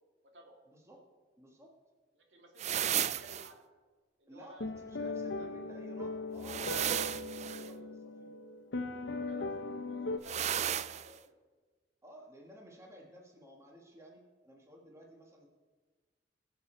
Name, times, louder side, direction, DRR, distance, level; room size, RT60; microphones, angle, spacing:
voice 1, 0.7-1.0 1.4-1.7 4.3-8.3 12.0-15.5, equal, 15° right, 0 dB, 1.5 m, -55 dB
voice 2, 2.2-3.6 4.2-5.5 7.3-7.7 9.2-11.3, right 1 dB, 75° right, 1 dB, 2.2 m, -57 dB
walking slipper fabric rhythm, 2.6-3.5 6.4-7.7 10.2-11.1, right 10 dB, 40° right, 0.4 m, -34 dB
sound 1, 4.6-10.2, left 3 dB, 75° left, 0.9 m, -39 dB
20.0 x 7.0 x 4.4 m, 1.4 s
head